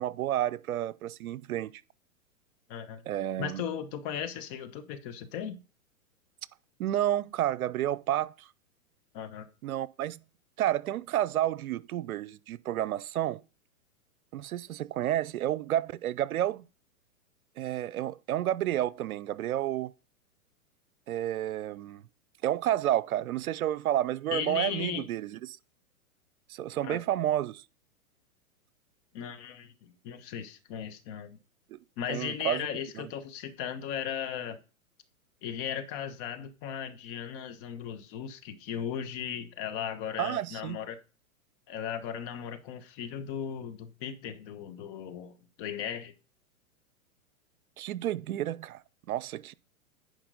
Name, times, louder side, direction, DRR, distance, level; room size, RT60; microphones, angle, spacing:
voice 1, 0.0-1.7 3.1-3.6 6.8-8.5 9.6-10.2 10.6-13.4 14.3-16.6 17.6-19.9 21.1-22.0 22.4-25.6 26.5-27.6 31.7-31.8 32.1-32.7 33.0-33.1 40.2-40.8 47.8-48.8 49.1-49.5, right 12 dB, 75° right, 0.7 m, -30 dB
voice 2, 2.7-3.0 3.4-5.6 9.1-9.5 24.3-25.1 26.8-27.0 29.1-31.4 32.0-34.6 35.4-41.0 41.7-46.1, left 8 dB, 40° left, 1.3 m, -37 dB
10.0 x 5.1 x 3.9 m
hypercardioid pair, 125°, 44 cm